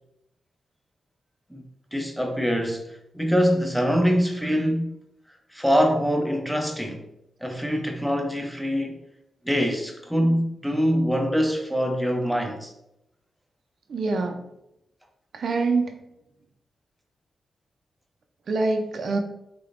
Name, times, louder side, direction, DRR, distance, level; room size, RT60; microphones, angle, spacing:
voice 1, 1.9-4.9 5.5-7.1 7.4-9.0 9.4-12.7, equal, ahead, 0.6 m, -24 dB
voice 2, 13.9-14.4 15.3-16.0 18.5-19.2, right 3 dB, 60° right, 0.5 m, -25 dB
3.7 x 3.4 x 2.5 m
wide cardioid pair, 115°, 0 cm